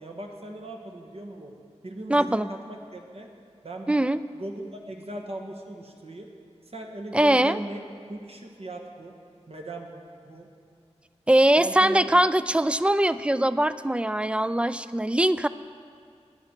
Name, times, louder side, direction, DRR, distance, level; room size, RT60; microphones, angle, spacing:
voice 1, 0.0-1.5 1.8-3.3 3.6-4.0 4.3-6.3 6.7-7.8 8.1-9.1 9.5-10.0 10.2-10.5 11.6-12.1, right 1 dB, 60° right, 1 dB, 1.4 m, -38 dB
voice 2, 2.1-2.5 3.9-4.2 7.1-7.6 11.3-15.5, right 1 dB, 10° right, 14 dB, 0.3 m, -22 dB
16.0 x 10.0 x 4.5 m, 2.3 s
wide cardioid pair, 70°, 12 cm